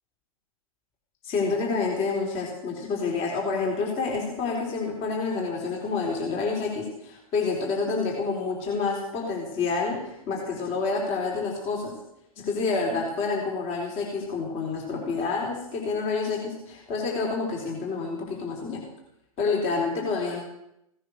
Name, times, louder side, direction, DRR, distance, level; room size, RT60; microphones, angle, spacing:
voice 1, 1.2-11.9 12.4-18.8 19.4-20.4, left 4 dB, 35° left, -1 dB, 4.2 m, -28 dB
17.0 x 10.0 x 6.6 m, 0.80 s
hypercardioid pair, 130°, 19 cm